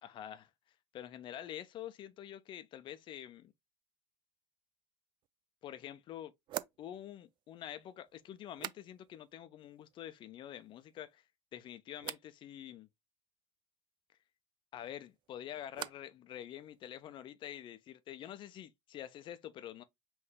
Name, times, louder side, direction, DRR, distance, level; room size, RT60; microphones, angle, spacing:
voice 1, 0.0-0.5 0.9-3.5 5.6-6.3 6.8-11.2 11.5-12.9 14.7-19.8, left 11 dB, 35° left, 0.6 m, -47 dB
sound 1, 5.2-5.3 6.5-9.3 9.6-10.2 10.5-11.1 12.0-12.3 14.8-16.2 16.5-17.1, right 13 dB, 35° right, 0.4 m, -48 dB
5.6 x 2.6 x 3.4 m
figure-of-eight pair, 70°, 14 cm